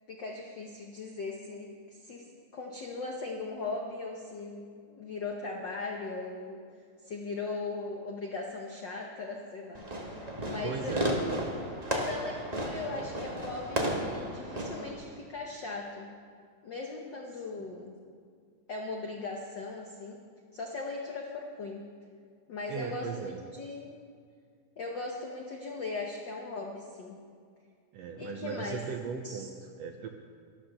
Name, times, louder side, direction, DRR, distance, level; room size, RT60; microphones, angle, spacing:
voice 1, 0.1-6.6 7.0-11.0 11.9-16.1 16.6-17.9 18.7-20.2 20.5-21.8 22.5-23.9 24.8-27.2 28.2-28.8 29.2-29.5, left 3 dB, 80° left, 0 dB, 1.0 m, -39 dB
Fireworks, 9.7-14.9, right 1 dB, 40° right, 0.5 m, -33 dB
voice 2, 10.6-11.1 17.5-17.7 22.7-23.4 27.9-30.1, right 6 dB, 75° right, 4 dB, 1.5 m, -38 dB
12.0 x 12.0 x 6.6 m, 2.1 s
omnidirectional pair, 3.6 m